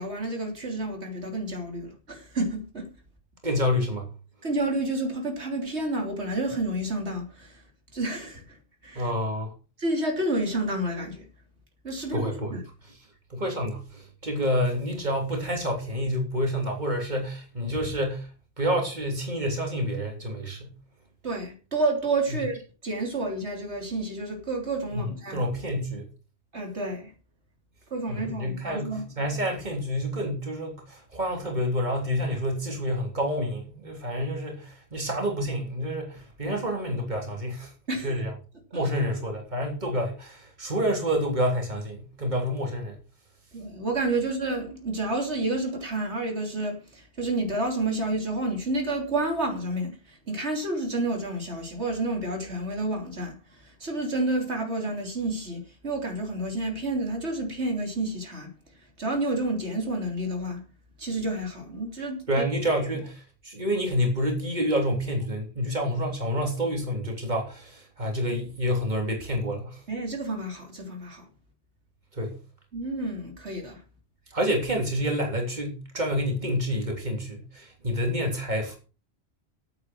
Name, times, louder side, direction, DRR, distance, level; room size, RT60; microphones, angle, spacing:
voice 1, 0.0-2.9 4.4-7.6 7.9-8.6 8.8-9.1 9.8-11.3 11.8-12.6 21.2-22.5 22.8-25.4 26.5-27.1 27.9-29.1 37.9-38.2 43.5-58.5 59.0-60.6 61.0-62.4 69.9-71.3 72.7-73.8, right 2 dB, 85° right, 3.6 m, -30 dB
voice 2, 3.4-4.1 9.0-9.5 12.1-12.6 13.3-18.3 18.6-20.7 24.9-26.1 28.1-37.7 38.0-38.3 38.7-43.0 62.3-69.8 72.2-72.3 74.3-78.8, equal, 40° right, 3.6 m, -28 dB
11.0 x 9.3 x 6.2 m
omnidirectional pair, 1.1 m